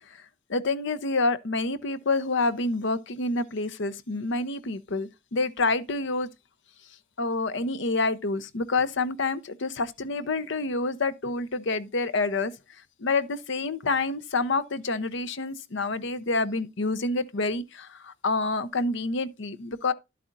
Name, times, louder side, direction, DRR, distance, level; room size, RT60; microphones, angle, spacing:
voice 1, 0.5-6.3 7.2-12.5 13.0-19.9, left 3 dB, 65° left, 0.8 m, -28 dB
11.5 x 8.4 x 2.6 m
head